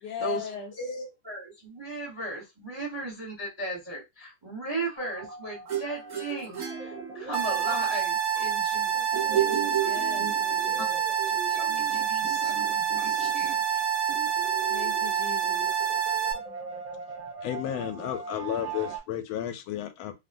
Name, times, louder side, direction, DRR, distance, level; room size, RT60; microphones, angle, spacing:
voice 1, 0.0-0.7 8.7-11.0 13.3-13.5 14.7-15.9, left 8 dB, 70° left, 1.1 m, -39 dB
voice 2, 0.8-8.9 9.3-9.4 10.2-10.3 10.8-10.9 11.5-13.6, right 2 dB, 30° right, 0.5 m, -36 dB
sound 1, 5.0-19.0, right 4 dB, 70° right, 0.8 m, -41 dB
sound 2, 5.7-7.6 9.1-10.7, right 11 dB, 50° right, 1.1 m, -31 dB
sound 3, 7.3-16.3, right 8 dB, 90° right, 1.5 m, -27 dB
voice 3, 17.4-20.1, left 11 dB, 85° left, 1.4 m, -32 dB
3.4 x 2.1 x 2.5 m
omnidirectional pair, 2.2 m